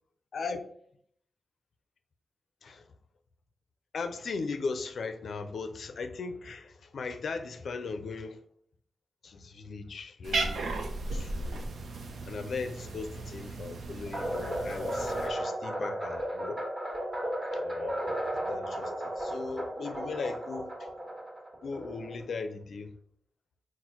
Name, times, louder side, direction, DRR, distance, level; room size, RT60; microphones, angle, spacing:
voice 1, 3.9-8.4 9.2-10.8 11.1-11.6 12.3-16.6 17.5-20.9 21.6-22.9, left 4 dB, 75° left, 0.4 m, -38 dB
Cat, 10.2-15.3, right 3 dB, 80° right, 0.5 m, -36 dB
sound 1, 14.1-22.4, right 1 dB, 25° right, 1.3 m, -35 dB
4.2 x 2.1 x 4.4 m
wide cardioid pair, 120°, 0 cm